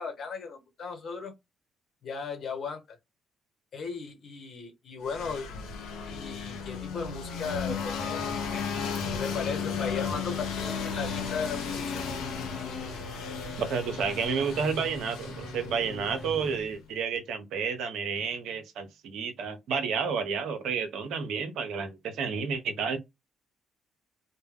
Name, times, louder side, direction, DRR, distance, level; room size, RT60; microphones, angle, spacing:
voice 1, 0.0-1.3 2.0-3.0 3.7-5.5 6.1-8.7 9.1-12.1, left 5 dB, 55° left, 1.0 m, -36 dB
sound 1, 5.0-16.8, left 6 dB, 80° left, 0.6 m, -35 dB
sound 2, 8.2-16.7, equal, ahead, 0.6 m, -45 dB
voice 2, 13.6-23.0, right 6 dB, 70° right, 0.5 m, -31 dB
2.1 x 2.1 x 3.3 m
hypercardioid pair, 50°, 0 cm